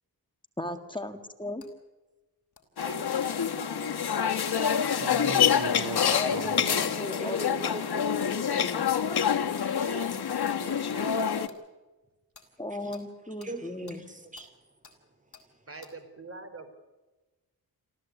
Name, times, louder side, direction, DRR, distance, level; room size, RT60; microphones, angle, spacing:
voice 1, 0.6-1.6 6.1-7.8 8.5-8.9 12.6-14.0, left 1 dB, 10° left, 6 dB, 1.9 m, -37 dB
sound 1, 1.6-1.7 2.5-2.9 3.9-4.0 5.3-5.4 6.5-6.6 7.3-7.4 8.2-8.4 8.7-8.8 9.5-9.7 10.1-10.2 10.6-11.6 12.3-12.5 12.9-13.0 13.4-13.5 13.9-14.0 14.4-14.5 14.8-15.0 15.3-15.5 15.8-15.9, left 5 dB, 45° left, 4.0 m, -54 dB
sound 2, 2.8-11.5, left 8 dB, 75° left, 1.4 m, -27 dB
voice 2, 2.8-4.5 9.7-10.2 10.5-11.5 15.7-16.7, right 2 dB, 35° right, 7 dB, 4.2 m, -45 dB
voice 3, 5.0-6.9, right 5 dB, 80° right, 6 dB, 2.3 m, -39 dB
voice 4, 6.7-8.3 12.8-13.1 13.4-14.5, right 1 dB, 20° right, 7 dB, 2.6 m, -41 dB
27.5 x 14.5 x 8.4 m, 1.2 s
wide cardioid pair, 105°, 39 cm